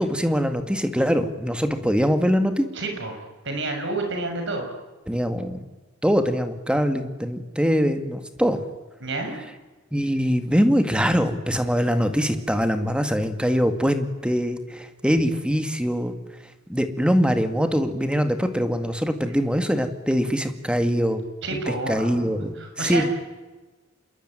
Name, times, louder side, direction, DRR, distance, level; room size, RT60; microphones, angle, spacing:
voice 1, 0.0-2.7 5.1-5.6 6.0-8.6 9.9-16.1 16.7-21.2 21.9-23.1, equal, 5° right, 8 dB, 2.1 m, -23 dB
voice 2, 2.7-4.7 9.0-9.4 21.4-23.1, right 2 dB, 65° right, 4 dB, 6.8 m, -30 dB
27.5 x 22.5 x 9.2 m, 1.2 s
head